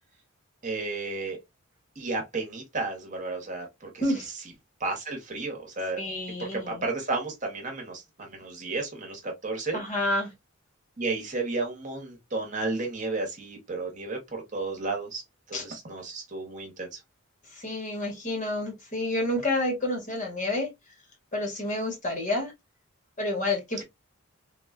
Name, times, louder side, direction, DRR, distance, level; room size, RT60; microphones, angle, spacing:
voice 1, 0.6-1.4 2.0-3.9 4.8-6.0 6.4-9.8 11.0-15.2 15.5-17.0, right 3 dB, 35° right, 1.0 m, -32 dB
voice 2, 6.0-6.8 9.7-10.3 15.5-15.7 17.5-20.7 21.3-22.5 23.2-23.8, left 1 dB, 35° left, 1.2 m, -29 dB
3.5 x 2.3 x 2.3 m
head